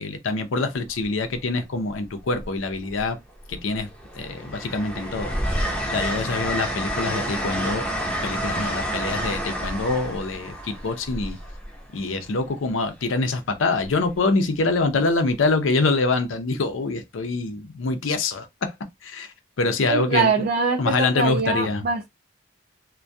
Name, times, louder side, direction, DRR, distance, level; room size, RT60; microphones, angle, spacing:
voice 1, 0.0-3.2 3.5-3.9 4.1-7.8 8.2-11.4 11.9-18.7 19.0-20.5 20.8-21.9, left 3 dB, 90° left, 0.5 m, -25 dB
Train, 0.7-1.0 2.3-3.1 3.5-12.2 13.8-14.1, equal, 5° left, 0.6 m, -29 dB
voice 2, 19.9-22.1, right 4 dB, 50° right, 0.3 m, -23 dB
2.2 x 2.2 x 2.6 m
head